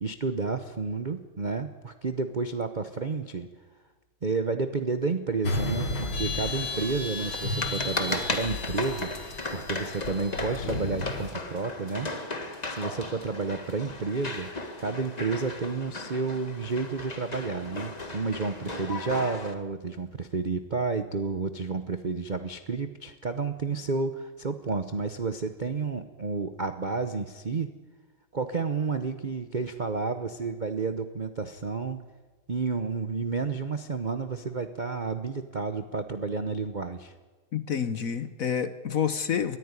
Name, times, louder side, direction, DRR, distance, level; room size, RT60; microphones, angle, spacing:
voice 1, 0.0-3.5 4.2-9.1 9.5-12.1 12.7-14.5 14.8-27.7 28.3-32.1 32.5-37.1, right 4 dB, 80° right, 9 dB, 0.4 m, -31 dB
sound 1, 5.4-11.3, left 2 dB, 80° left, 3.4 m, -33 dB
sound 2, 6.4-19.5, left 2 dB, 20° left, 1.5 m, -36 dB
voice 2, 37.5-39.6, left 7 dB, 55° left, 12 dB, 1.0 m, -28 dB
21.5 x 14.5 x 9.7 m, 1.3 s
omnidirectional pair, 2.3 m